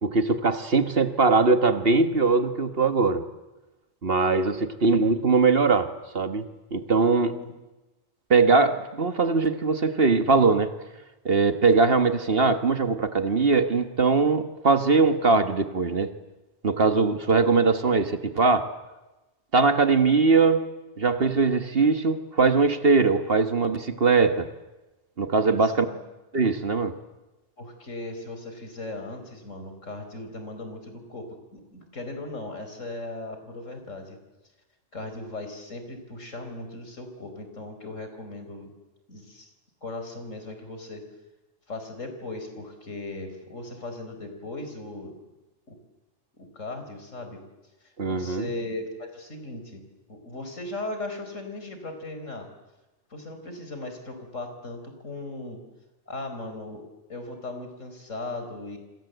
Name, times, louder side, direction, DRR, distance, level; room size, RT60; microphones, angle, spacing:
voice 1, 0.0-3.3 4.0-7.4 8.3-10.7 11.2-16.1 16.6-18.7 19.5-20.7 21.0-24.5 25.2-25.9 26.3-26.9 48.0-48.5, right 4 dB, 50° right, 9 dB, 1.6 m, -21 dB
voice 2, 25.4-26.0 27.6-34.2 34.9-38.7 39.1-39.5 39.8-41.0 41.7-45.2 45.7-45.8 46.3-47.4 47.8-49.8 50.1-52.5 53.1-55.6 56.1-56.8 57.1-58.8, left 2 dB, 70° left, 6 dB, 5.0 m, -38 dB
28.0 x 26.0 x 8.1 m, 1.1 s
omnidirectional pair, 1.4 m